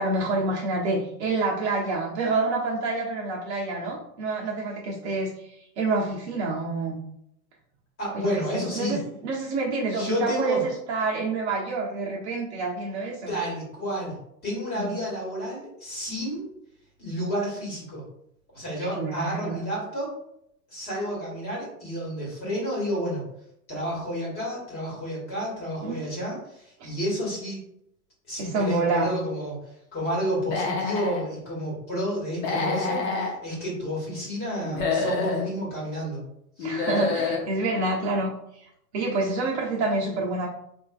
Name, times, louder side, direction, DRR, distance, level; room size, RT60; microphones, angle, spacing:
voice 1, 0.0-7.0 8.1-13.4 14.8-15.0 18.9-19.7 25.8-26.0 26.8-26.9 28.4-29.1 36.6-40.5, right 3 dB, 45° right, -5 dB, 1.1 m, -28 dB
voice 2, 8.0-9.0 9.9-10.6 13.3-16.5 17.0-18.0 18.5-20.1 20.7-23.2 23.7-27.6 28.3-29.6 29.9-36.2 36.6-36.7, equal, 20° left, -5 dB, 1.4 m, -30 dB
Human voice / Animal, 30.4-31.2 32.3-33.3 34.6-35.5 36.6-37.5, left 4 dB, 35° left, 0.7 m, -27 dB
4.1 x 2.6 x 2.4 m, 0.75 s
hypercardioid pair, 150°, 49 cm